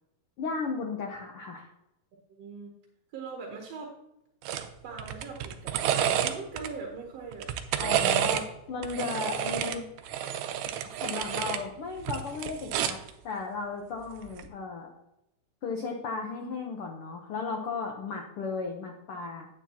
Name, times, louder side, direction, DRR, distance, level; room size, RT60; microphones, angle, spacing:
voice 1, 0.4-1.7 7.8-9.8 10.7-14.9 15.6-19.5, left 4 dB, 90° left, 1 dB, 1.2 m, -35 dB
voice 2, 2.3-2.7 3.1-3.9 4.8-7.5 9.2-9.4 11.1-11.3, right 4 dB, 65° right, 1 dB, 1.9 m, -41 dB
sound 1, 4.4-4.7 5.0-6.7 7.3-8.5 8.8-11.6 12.0-13.1 14.3-14.5, right 10 dB, 80° right, 1.7 m, -29 dB
9.4 x 8.8 x 2.9 m, 0.85 s
omnidirectional pair, 3.8 m